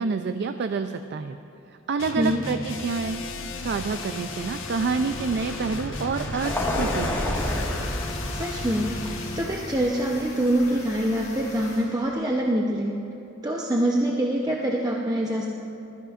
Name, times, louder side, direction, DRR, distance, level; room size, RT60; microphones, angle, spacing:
voice 1, 0.0-1.4 1.9-3.2 3.6-7.2, right 4 dB, 55° right, 8 dB, 0.4 m, -28 dB
sound 1, 2.0-9.6, left 3 dB, 65° left, 1.2 m, -36 dB
Vehicle, 3.0-11.8, left 1 dB, 10° left, 1.6 m, -32 dB
sound 2, 7.3-12.5, left 3 dB, 35° left, 1.8 m, -43 dB
voice 2, 8.3-8.9 9.3-12.9 13.4-15.5, right 1 dB, 20° right, -2 dB, 0.7 m, -25 dB
21.0 x 13.5 x 2.5 m, 2.9 s
head